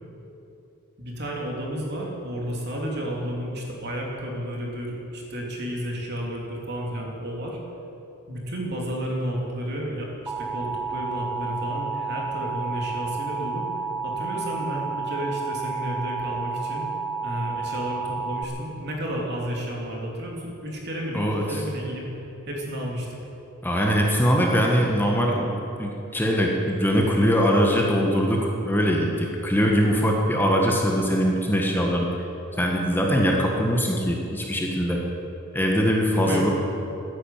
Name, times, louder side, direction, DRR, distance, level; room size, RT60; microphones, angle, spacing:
voice 1, 1.0-7.6 8.3-13.7 14.0-16.9 17.2-22.0 22.5-23.1 36.1-36.5, equal, 50° right, -2 dB, 3.1 m, -32 dB
Alarm, 10.3-18.4, right 4 dB, 5° right, 0.8 m, -31 dB
voice 2, 23.6-32.1 32.6-35.0 35.5-36.5, equal, 10° left, -1 dB, 1.5 m, -22 dB
14.5 x 10.0 x 8.9 m, 3.0 s
head